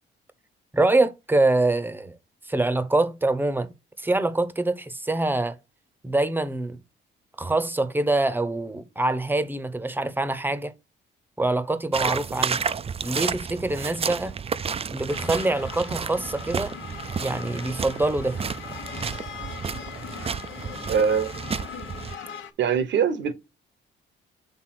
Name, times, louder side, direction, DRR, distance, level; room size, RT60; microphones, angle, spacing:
voice 1, 0.7-2.2 2.5-3.7 4.0-5.6 6.0-6.8 7.4-10.7 11.4-12.6 13.0-14.4 14.9-16.7 17.2-18.4, right 2 dB, 10° right, 0.8 m, -25 dB
sound 1, 11.9-22.1, right 6 dB, 30° right, 0.4 m, -31 dB
sound 2, 15.1-22.5, left 7 dB, 75° left, 1.1 m, -40 dB
voice 2, 20.9-21.3 22.6-23.4, right 7 dB, 65° right, 1.0 m, -22 dB
6.2 x 3.6 x 5.9 m
cardioid pair, 90°, 20 cm